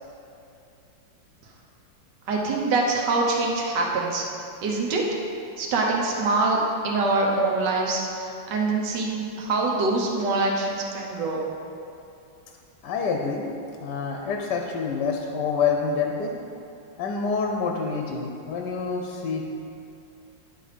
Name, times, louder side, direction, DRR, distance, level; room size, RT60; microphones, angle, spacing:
voice 1, 2.3-4.2 4.6-5.0 5.6-6.6 6.8-11.4, right 3 dB, 70° right, -1 dB, 1.6 m, -24 dB
voice 2, 12.8-13.4 13.8-16.3 17.0-19.5, left 5 dB, 70° left, 2 dB, 1.2 m, -27 dB
10.5 x 4.1 x 5.0 m, 2.6 s
omnidirectional pair, 2.0 m